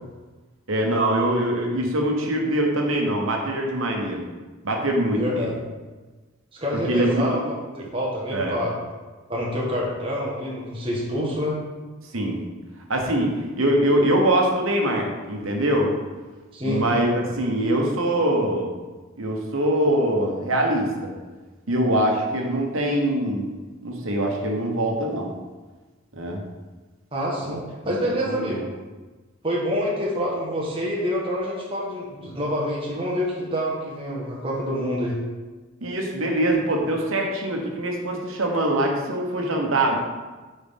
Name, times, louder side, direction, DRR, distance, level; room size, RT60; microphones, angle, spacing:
voice 1, 0.7-4.2 4.6-5.5 6.9-7.2 8.3-8.6 12.1-12.4 12.9-15.9 16.6-18.7 19.2-21.1 21.7-23.5 23.8-25.3 26.1-26.4 27.4-27.6 28.2-28.6 35.8-40.0, right 1 dB, 75° right, 1 dB, 1.2 m, -23 dB
voice 2, 5.2-5.5 6.5-7.4 7.7-8.7 9.3-11.6 16.5-16.9 27.1-27.6 27.8-28.7 29.4-35.2, equal, 25° right, -5 dB, 1.3 m, -27 dB
8.2 x 4.2 x 3.7 m, 1.3 s
head